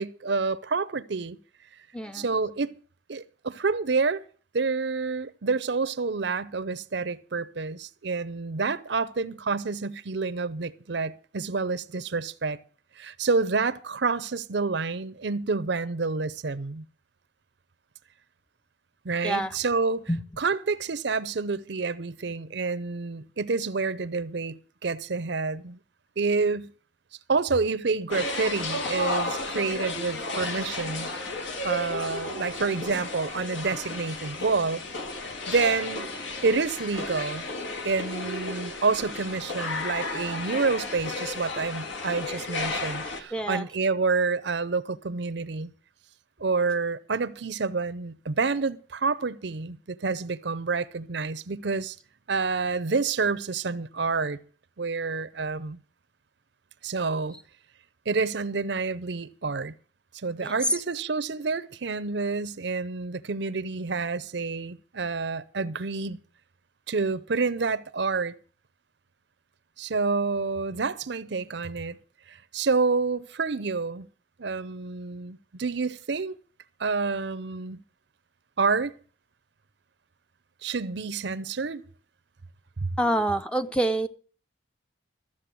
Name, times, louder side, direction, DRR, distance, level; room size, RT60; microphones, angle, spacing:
voice 1, 0.0-1.4 2.1-2.7 3.1-4.2 4.5-12.6 13.0-16.8 19.0-20.1 20.4-25.8 26.2-26.7 27.3-31.1 31.6-34.8 35.5-36.1 36.4-37.4 37.8-45.7 46.4-52.0 52.3-54.4 54.8-55.8 56.8-57.4 58.1-59.7 60.2-66.2 66.9-68.3 69.8-72.0 72.3-74.1 74.4-76.4 76.8-77.8 78.6-79.0 80.6-81.8 82.8-82.9, right 4 dB, 65° right, 0.6 m, -28 dB
voice 2, 1.9-2.3 19.2-19.5 20.1-20.2 43.3-43.7 60.4-60.5 83.0-84.1, right 1 dB, 5° left, 0.6 m, -26 dB
sound 1, 28.1-43.2, left 2 dB, 75° left, 2.0 m, -33 dB
14.0 x 7.6 x 7.6 m
head